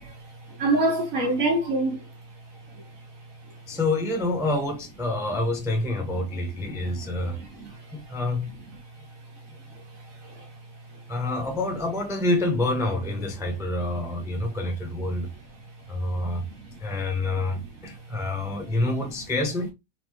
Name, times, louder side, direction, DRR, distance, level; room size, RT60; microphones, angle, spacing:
voice 1, 0.6-2.0 6.2-7.8 10.2-10.5 13.5-13.6 13.9-14.0 15.2-15.3 16.3-16.4 16.6-16.8 17.4-17.5 17.8-18.0 18.4-19.1, right 2 dB, 60° right, 1.3 m, -28 dB
voice 2, 3.7-7.4 7.9-8.5 11.1-15.3 15.9-16.5 16.8-19.7, left 2 dB, 5° right, 0.4 m, -27 dB
3.7 x 3.1 x 3.0 m
omnidirectional pair, 1.7 m